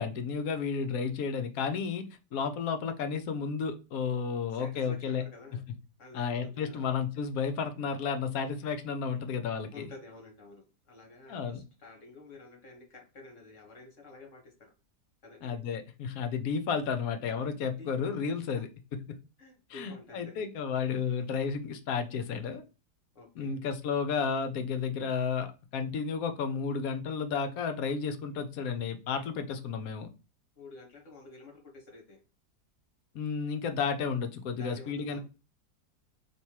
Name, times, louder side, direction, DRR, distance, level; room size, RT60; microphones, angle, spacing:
voice 1, 0.0-2.0 2.3-5.2 6.1-9.9 11.3-11.6 15.4-18.7 19.1-19.2 19.7-22.6 23.4-25.5 25.7-30.1 33.1-35.2, left 6 dB, 70° left, 8 dB, 1.0 m, -32 dB
voice 2, 4.5-5.6 6.0-6.9 9.7-14.7 15.2-15.6 17.8-18.2 19.4-20.5 23.1-23.6 30.6-32.2 34.5-35.2, left 3 dB, 50° left, 2 dB, 1.3 m, -50 dB
3.3 x 2.8 x 4.4 m, 0.31 s
omnidirectional pair, 1.7 m